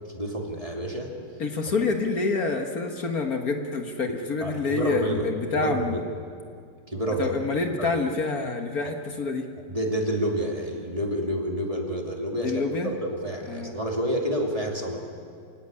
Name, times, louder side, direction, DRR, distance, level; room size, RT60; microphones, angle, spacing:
voice 1, 0.1-1.1 1.7-1.8 4.4-6.1 6.9-7.3 7.8-8.0 9.7-15.0, equal, 20° right, 0 dB, 2.9 m, -29 dB
voice 2, 1.4-6.0 7.2-9.5 12.4-12.9 13.5-13.7, left 3 dB, 60° left, 5 dB, 1.9 m, -27 dB
28.5 x 16.5 x 9.8 m, 2.3 s
omnidirectional pair, 1.8 m